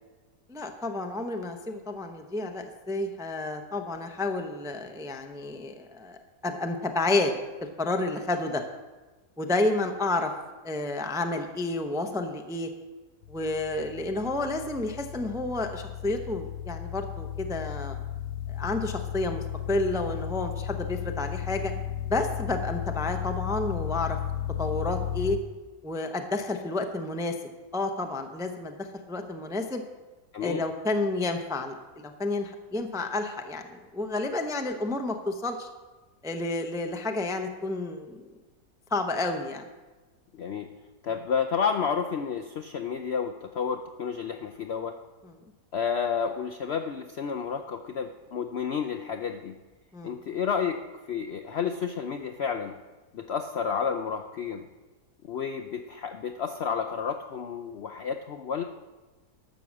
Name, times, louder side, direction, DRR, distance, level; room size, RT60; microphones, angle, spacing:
voice 1, 0.5-6.2 6.4-7.3 7.6-8.6 9.4-10.3 10.6-12.7 13.3-18.0 18.5-21.7 22.1-24.2 24.6-25.4 25.8-27.4 27.7-29.8 30.4-35.7 36.2-38.2 38.9-39.7 45.2-45.3 49.9-50.1, left 2 dB, 5° right, 5 dB, 0.4 m, -30 dB
sound 1, 13.2-25.4, left 11 dB, 85° left, 1.2 m, -34 dB
voice 2, 40.3-40.7 41.0-45.0 45.7-49.5 50.0-50.8 51.1-52.8 53.1-54.7 55.2-58.6, left 6 dB, 65° left, 5 dB, 0.6 m, -31 dB
12.5 x 6.4 x 7.3 m, 1.2 s
omnidirectional pair, 1.7 m